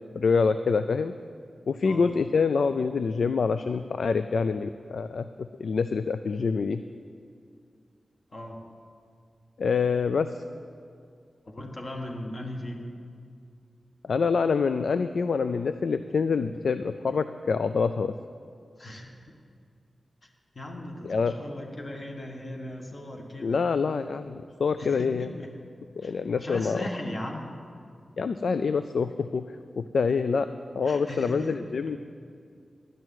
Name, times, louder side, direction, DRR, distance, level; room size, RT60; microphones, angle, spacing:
voice 1, 0.1-1.1 1.7-6.8 9.6-10.3 14.0-18.1 21.0-21.3 23.4-25.3 26.0-26.8 28.2-29.4 29.8-30.5 30.7-32.0, left 5 dB, 80° left, 11 dB, 0.3 m, -26 dB
voice 2, 8.3-8.6 11.5-12.8 18.8-19.4 20.2-20.3 20.5-23.6 24.8-25.5 26.0-27.5 30.8-31.6, left 1 dB, 40° left, 1 dB, 1.5 m, -38 dB
11.5 x 6.2 x 9.1 m, 2.3 s
wide cardioid pair, 115°, 0 cm